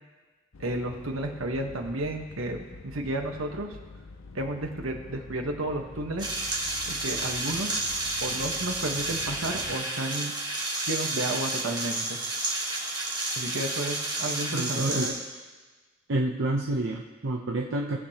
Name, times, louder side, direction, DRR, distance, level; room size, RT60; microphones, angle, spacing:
sound 1, 0.5-9.8, left 3 dB, 75° left, 0.5 m, -46 dB
voice 1, 0.6-3.8 4.3-6.3 6.9-7.8 8.2-10.3 10.9-12.2 13.4-15.1, right 1 dB, 80° right, 3 dB, 1.2 m, -32 dB
sound 2, 6.2-15.1, right 2 dB, 20° right, 1.5 m, -31 dB
voice 2, 14.5-15.2 16.1-18.0, right 2 dB, 65° right, -1 dB, 0.7 m, -28 dB
19.5 x 6.8 x 2.9 m, 1.3 s
head